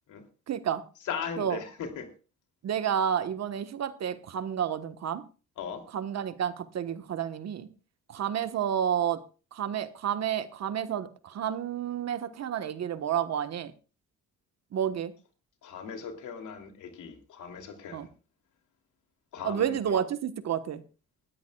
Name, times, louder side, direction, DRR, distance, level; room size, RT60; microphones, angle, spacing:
voice 1, 0.5-0.8 1.4-1.6 2.6-5.2 5.9-7.7 8.1-9.2 9.5-13.7 14.7-15.1 17.9-18.1 19.4-20.8, right 9 dB, 60° right, 10 dB, 1.3 m, -30 dB
voice 2, 1.0-2.1 5.6-5.8 15.6-18.1 19.3-20.0, left 6 dB, 80° left, 4 dB, 3.1 m, -38 dB
20.0 x 13.5 x 2.4 m, 0.34 s
cardioid pair, 90°, 30 cm